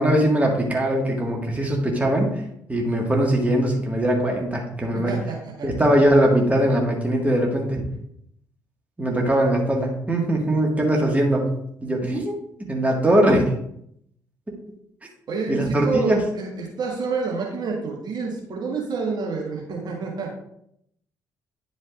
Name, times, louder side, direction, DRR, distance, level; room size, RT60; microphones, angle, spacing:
voice 1, 0.0-2.4 2.7-5.1 5.6-7.9 9.0-12.3 12.7-13.5 15.5-16.2, right 1 dB, 15° right, 0 dB, 1.8 m, -21 dB
voice 2, 4.9-5.9 15.3-20.3, right 4 dB, 50° right, -1 dB, 1.6 m, -28 dB
9.9 x 5.1 x 2.5 m, 0.73 s
hypercardioid pair, 45°, 9 cm